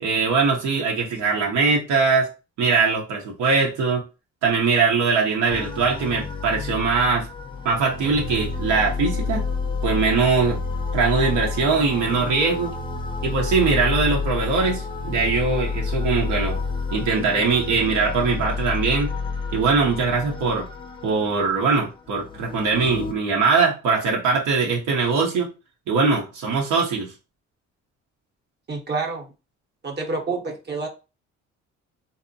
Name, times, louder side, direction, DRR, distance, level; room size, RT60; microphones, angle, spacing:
voice 1, 0.0-2.3 2.6-4.0 4.4-7.3 7.6-9.4 9.8-10.6 10.9-12.7 13.2-16.6 16.9-19.1 19.5-20.7 21.0-25.5 25.9-27.1, right 4 dB, 85° right, -1 dB, 0.7 m, -21 dB
sound 1, 5.5-23.1, left 4 dB, 15° left, 0.4 m, -29 dB
voice 2, 28.7-29.3 29.8-30.9, right 3 dB, 35° right, 2 dB, 0.7 m, -28 dB
2.5 x 2.0 x 2.6 m, 0.29 s
cardioid pair, 80°, 30 cm